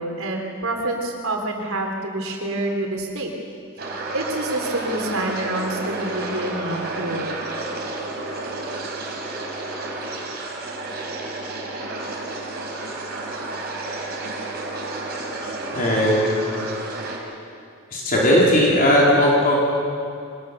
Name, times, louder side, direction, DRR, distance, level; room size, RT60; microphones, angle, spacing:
voice 1, 0.0-3.3 4.1-7.3, right 2 dB, 90° right, 1 dB, 3.6 m, -27 dB
sound 1, 3.8-17.2, right 2 dB, 50° right, 3.9 m, -31 dB
voice 2, 15.4-16.4 17.9-19.5, left 1 dB, 45° left, -4 dB, 3.9 m, -18 dB
24.5 x 19.0 x 6.9 m, 2.4 s
head